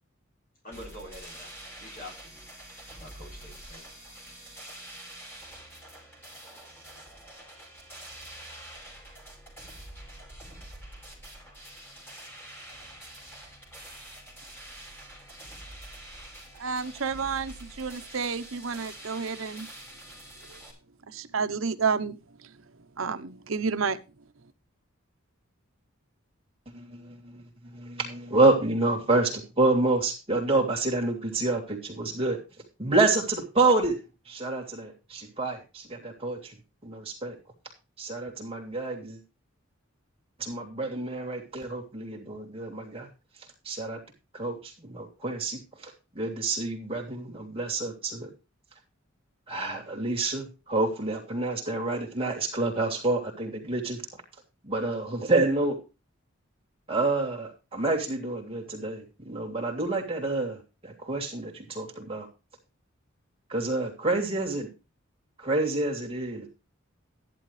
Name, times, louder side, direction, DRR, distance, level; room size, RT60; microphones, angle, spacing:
voice 1, 0.6-1.5 1.8-2.4 3.0-3.9, left 1 dB, 45° left, 1 dB, 7.4 m, -45 dB
sound 1, 0.7-20.7, right 1 dB, 10° left, 5.5 m, -46 dB
voice 2, 16.5-19.7 20.5-20.6 21.1-22.2 23.0-24.0, right 5 dB, 85° right, 11 dB, 0.9 m, -30 dB
voice 3, 26.7-32.4 32.8-34.0 34.3-36.6 36.8-37.4 38.0-39.2 40.4-43.1 43.6-44.0 44.3-48.3 49.5-54.0 54.6-55.8 56.9-62.3 63.5-64.7 65.4-66.5, right 2 dB, 30° right, 2 dB, 3.0 m, -28 dB
14.0 x 11.0 x 3.3 m, 0.30 s
head